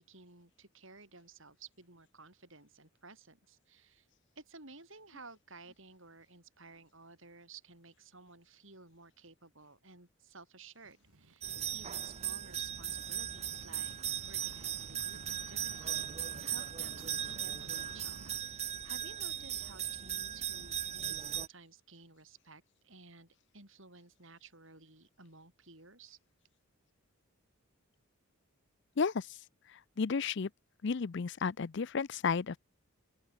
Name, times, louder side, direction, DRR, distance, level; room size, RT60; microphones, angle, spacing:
voice 1, 0.0-4.1 4.4-14.0 14.3-16.1 16.4-26.2, right 3 dB, 60° right, 7.6 m, -55 dB
sound 1, 10.8-18.4, right 2 dB, 80° right, 2.2 m, -55 dB
sound 2, 11.4-21.5, right 10 dB, 30° right, 0.8 m, -38 dB
voice 2, 29.0-29.3 30.0-30.5 30.8-32.6, left 5 dB, 50° left, 0.5 m, -32 dB
open air
head